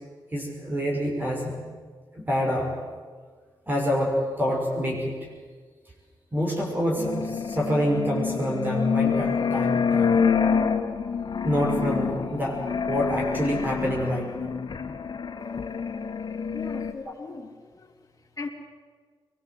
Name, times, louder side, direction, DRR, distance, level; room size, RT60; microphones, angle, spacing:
voice 1, 0.3-1.6 2.1-2.7 3.7-5.1 6.3-10.2 11.4-12.6 12.9-14.5 17.0-17.1, equal, 25° right, -2 dB, 6.2 m, -27 dB
sound 1, 7.0-16.9, left 6 dB, 60° left, 1.9 m, -27 dB
voice 2, 16.5-17.9 18.4-18.5, left 3 dB, 40° left, 2 dB, 3.4 m, -38 dB
23.5 x 21.5 x 8.0 m, 1.5 s
wide cardioid pair, 95°, 8 cm